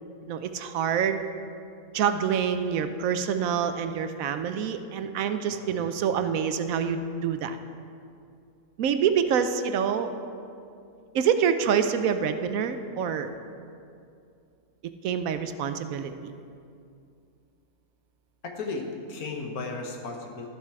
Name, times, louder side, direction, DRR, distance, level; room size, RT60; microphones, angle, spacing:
voice 1, 0.3-1.2 1.9-7.6 8.8-10.1 11.1-13.3 15.0-16.3, right 7 dB, 75° right, 9 dB, 1.0 m, -26 dB
voice 2, 5.5-5.9 15.5-15.7 18.4-20.5, left 3 dB, 85° left, 2 dB, 1.6 m, -35 dB
13.0 x 7.4 x 4.7 m, 2.5 s
omnidirectional pair, 1.5 m